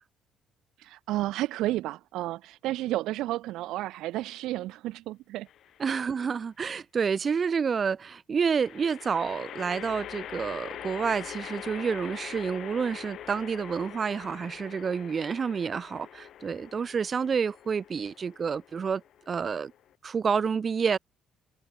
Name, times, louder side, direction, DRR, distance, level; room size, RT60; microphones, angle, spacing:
voice 1, 0.8-5.5, right 16 dB, 80° right, 0.9 m, -32 dB
sound 1, 5.5-6.1 8.6-19.9, left 11 dB, 65° left, 2.4 m, -44 dB
voice 2, 5.8-19.0 19.3-19.7 20.0-21.0, right 6 dB, 45° right, 1.7 m, -29 dB
supercardioid pair, 70°, 0 cm